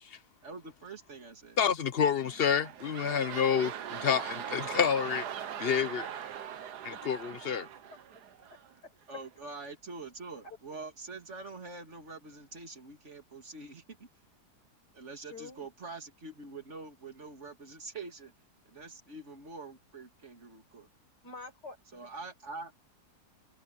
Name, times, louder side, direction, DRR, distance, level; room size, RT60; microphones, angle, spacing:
voice 1, 0.4-1.6 9.1-14.1 14.9-18.3 18.7-20.9 21.9-22.8, right 3 dB, 45° right, 2.7 m, -45 dB
voice 2, 1.6-5.3 5.6-6.1 6.8-7.6, left 7 dB, 45° left, 0.9 m, -28 dB
sound 1, 2.2-8.7 9.3-9.4, right 9 dB, 75° right, 1.6 m, -41 dB
voice 3, 8.5-8.9 10.4-10.6 15.2-15.7 21.2-22.0, left 3 dB, 85° left, 5.9 m, -48 dB
omnidirectional pair, 1.8 m